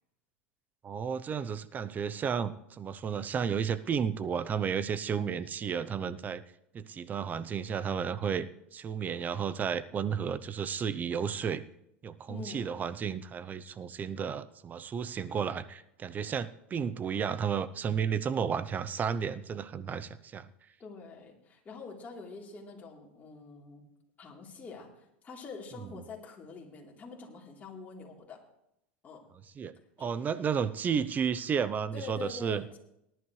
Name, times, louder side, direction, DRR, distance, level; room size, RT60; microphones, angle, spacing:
voice 1, 0.8-6.4 6.7-11.6 12.0-20.5 29.6-32.6, right 7 dB, 30° right, 14 dB, 0.7 m, -32 dB
voice 2, 12.3-12.7 20.8-23.8 24.2-28.4 29.0-29.2 30.0-30.1 31.9-32.8, left 5 dB, 25° left, -2 dB, 3.6 m, -45 dB
19.0 x 11.0 x 3.3 m, 0.81 s
supercardioid pair, 110°, 6 cm